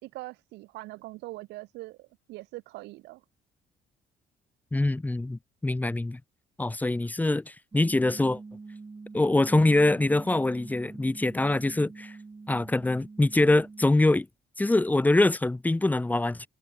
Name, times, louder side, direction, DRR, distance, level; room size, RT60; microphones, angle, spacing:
voice 1, 0.0-3.2, right 20 dB, 90° right, 2.1 m, -42 dB
voice 2, 4.7-6.2 6.6-8.4 9.1-12.2 12.5-14.3 14.6-16.5, left 2 dB, 10° left, 1.1 m, -24 dB
sound 1, 7.7-13.9, right 4 dB, 20° right, 3.5 m, -45 dB
cardioid pair, 110°, 17 cm